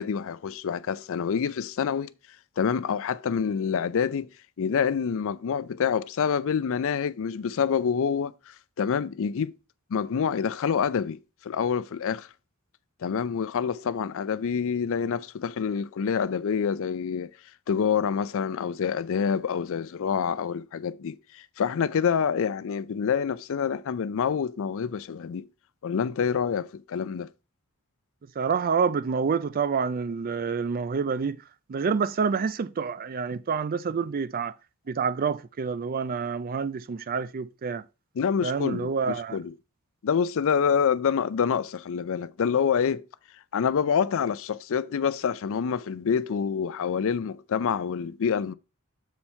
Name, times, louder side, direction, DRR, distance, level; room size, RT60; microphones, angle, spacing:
voice 1, 0.0-2.1 2.6-4.3 4.6-8.3 8.8-9.5 9.9-12.3 13.0-17.3 17.7-25.4 25.8-27.3 38.2-39.5 40.0-43.0 43.5-48.5, left 7 dB, 65° left, 0.4 m, -27 dB
voice 2, 28.4-31.4 31.7-34.5 34.9-37.8 38.4-39.4, right 5 dB, 40° right, 0.4 m, -28 dB
7.1 x 4.4 x 4.3 m
head